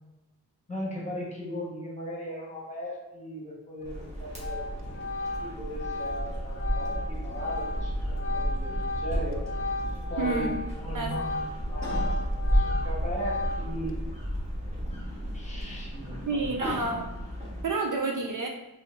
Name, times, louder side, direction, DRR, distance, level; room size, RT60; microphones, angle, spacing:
voice 1, 0.7-4.7 5.4-9.4 10.1-11.4 11.7-12.3 12.5-14.0 15.3-16.8 17.5-17.6, equal, 20° left, -4 dB, 1.2 m, -38 dB
Organ, 3.8-4.1 4.4-10.7 11.0-13.9, left 2 dB, 35° left, 0.4 m, -35 dB
sound 1, 3.8-17.6, equal, 15° right, 1.4 m, -32 dB
voice 2, 10.2-10.6 10.9-11.1 16.3-17.1 17.6-18.5, right 3 dB, 55° right, 1 dB, 0.5 m, -29 dB
3.9 x 2.7 x 2.5 m, 1.1 s
cardioid pair, 60°, 39 cm